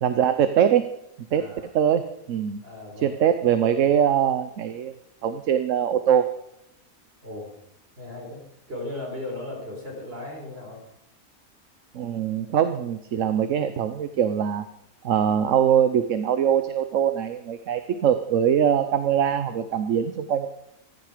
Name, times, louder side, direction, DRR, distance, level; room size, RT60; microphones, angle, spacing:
voice 1, 0.0-0.9 1.3-1.4 1.7-2.0 2.3-2.6 3.0-4.9 5.2-6.3 11.9-14.6 15.0-20.5, right 9 dB, 65° right, 10 dB, 1.1 m, -22 dB
voice 2, 1.3-1.7 2.6-3.2 7.2-7.6 8.0-10.8, left 2 dB, 45° right, 1 dB, 4.4 m, -37 dB
15.5 x 14.5 x 5.0 m, 0.78 s
omnidirectional pair, 1.5 m